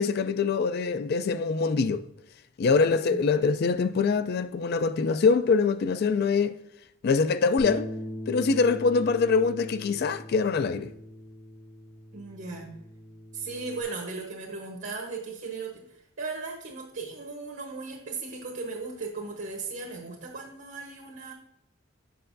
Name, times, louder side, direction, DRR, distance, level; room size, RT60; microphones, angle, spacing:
voice 1, 0.0-2.0 2.6-6.6 7.0-7.9 8.3-10.9, left 4 dB, 50° left, 0.3 m, -24 dB
voice 2, 2.8-3.3 12.1-12.8 13.3-21.3, right 4 dB, 60° right, 1.1 m, -37 dB
Bass guitar, 7.6-13.8, equal, 20° left, 0.7 m, -41 dB
7.7 x 5.5 x 2.6 m
head